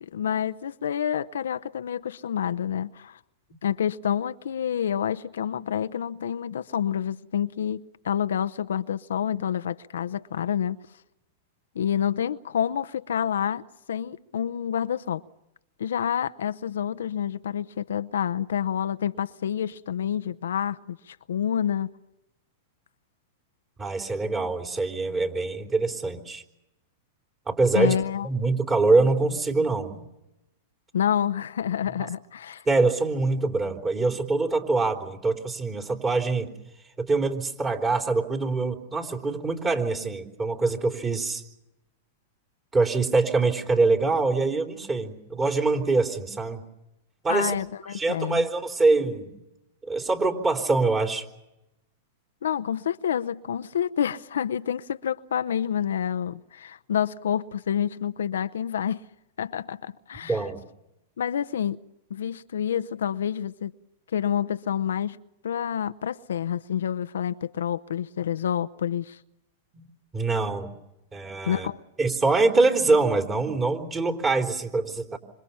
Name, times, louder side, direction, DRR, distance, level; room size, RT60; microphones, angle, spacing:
voice 1, 0.0-3.2 3.6-10.8 11.7-15.2 15.8-21.9 27.7-28.3 30.9-32.6 47.3-48.5 52.4-59.0 59.4-60.5 61.2-61.8 62.1-63.7 64.1-65.2 65.4-69.2 71.5-71.8, left 9 dB, 85° left, 0.8 m, -28 dB
voice 2, 23.8-26.4 27.5-28.0 28.2-30.0 32.0-32.1 32.7-36.5 37.0-41.4 42.7-46.6 47.2-47.5 47.9-49.3 49.8-51.3 60.2-60.6 69.7-69.8 70.1-70.7 71.1-71.7 72.0-75.2, right 3 dB, 20° right, 3.7 m, -24 dB
26.5 x 25.5 x 5.8 m
hypercardioid pair, 125°, 0 cm